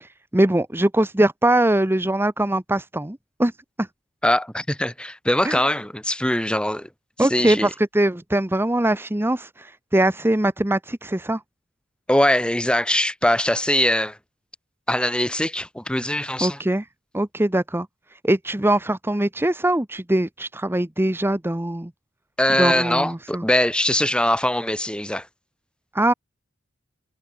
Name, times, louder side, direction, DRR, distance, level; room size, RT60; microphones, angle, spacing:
voice 1, 0.0-3.5 3.8-3.9 5.4-5.6 7.2-11.4 16.4-16.8 17.1-21.9 22.6-23.4 25.9-26.1, right 1 dB, 10° right, 0.9 m, -22 dB
voice 2, 4.2-6.9 7.2-7.7 12.1-14.2 14.9-16.6 22.4-25.3, left 1 dB, 5° left, 3.9 m, -22 dB
head